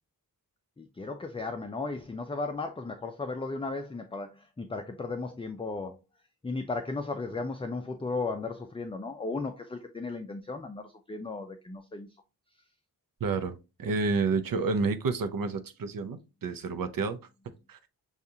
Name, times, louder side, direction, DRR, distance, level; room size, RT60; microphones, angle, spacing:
voice 1, 0.8-6.0 6.4-12.1, left 3 dB, 15° left, 0.4 m, -35 dB
voice 2, 13.2-17.2 17.7-17.8, right 4 dB, 70° right, 0.6 m, -30 dB
6.5 x 2.4 x 2.7 m
wide cardioid pair, 115°, 36 cm